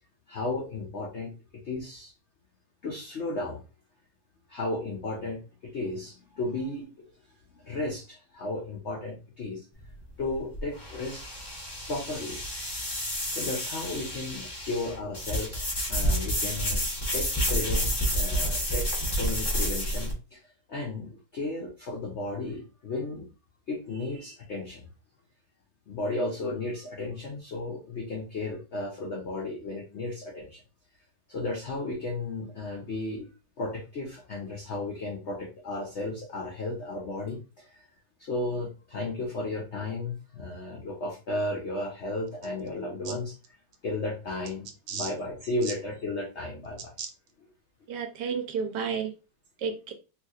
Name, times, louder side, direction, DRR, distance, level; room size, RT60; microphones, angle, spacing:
voice 1, 0.3-1.4 1.6-2.1 2.8-3.6 4.5-6.9 7.5-9.6 10.2-11.2 11.9-12.4 13.3-16.8 17.1-20.4 20.7-23.3 23.7-24.9 25.9-30.6 31.3-33.3 33.6-37.9 38.2-43.3 43.8-46.9, left 2 dB, 80° left, 0.6 m, -34 dB
sound 1, 9.7-20.1, equal, 25° left, 0.5 m, -30 dB
voice 2, 47.9-49.1 49.6-49.9, right 6 dB, 70° right, 1.1 m, -31 dB
3.5 x 2.9 x 2.4 m
omnidirectional pair, 2.1 m